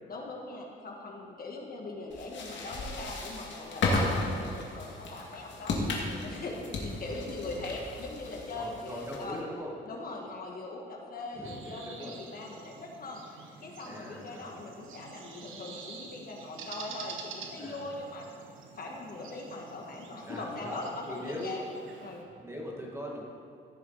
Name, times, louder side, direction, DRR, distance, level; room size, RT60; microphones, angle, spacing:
voice 1, 0.1-9.4 9.8-13.2 13.6-18.3 18.7-22.3, left 2 dB, 50° left, 0 dB, 1.7 m, -41 dB
sound 1, 2.1-9.4, left 2 dB, 70° left, 2.1 m, -34 dB
voice 2, 8.5-9.7 11.4-12.1 13.8-14.5 17.6-17.9 20.3-20.8 21.1-21.6 22.4-23.2, equal, 15° right, -2 dB, 2.2 m, -40 dB
sound 2, 11.4-22.2, right 5 dB, 80° right, 1.3 m, -48 dB
15.5 x 7.0 x 4.2 m, 2.6 s
cardioid pair, 90°, 20 cm